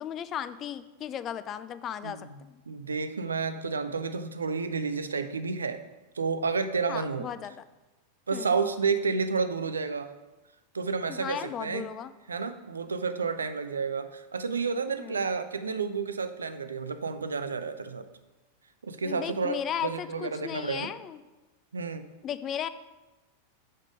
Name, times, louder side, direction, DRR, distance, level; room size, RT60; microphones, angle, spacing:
voice 1, 0.0-2.6 6.9-7.5 8.3-8.5 11.1-12.1 15.0-15.3 19.0-21.2 22.2-22.7, left 9 dB, 30° left, 14 dB, 0.3 m, -36 dB
voice 2, 2.0-2.4 2.7-5.8 6.1-7.3 8.3-10.1 10.7-11.9 12.3-18.1 18.8-20.9 21.7-22.1, right 4 dB, 75° right, 10 dB, 0.5 m, -30 dB
6.6 x 5.1 x 5.0 m, 1.1 s
figure-of-eight pair, 90°, 0 cm